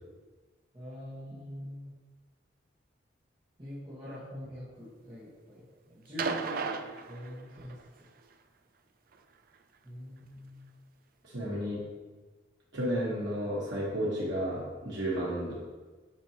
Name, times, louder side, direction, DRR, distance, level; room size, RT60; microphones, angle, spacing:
voice 1, 0.7-1.9 3.6-5.6 5.9-6.6 7.1-7.7 9.8-10.7, equal, 25° right, -11 dB, 1.4 m, -44 dB
sound 1, 6.2-7.8 9.1-9.2, right 5 dB, 50° right, 0.4 m, -35 dB
voice 2, 11.2-11.8 12.7-15.5, equal, 75° right, -7 dB, 1.4 m, -32 dB
7.6 x 5.2 x 3.0 m, 1.3 s
head